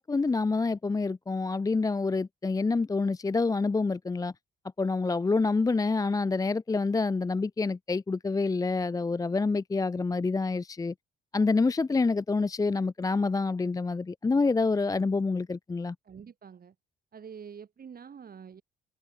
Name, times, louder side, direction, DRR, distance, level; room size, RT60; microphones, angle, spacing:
voice 1, 0.0-4.3 4.8-10.9 11.3-16.0, left 3 dB, 20° left, 0.5 m, -27 dB
voice 2, 16.0-16.7 17.1-18.6, right 7 dB, 50° right, 8.0 m, -46 dB
cardioid pair, 90°, 20 cm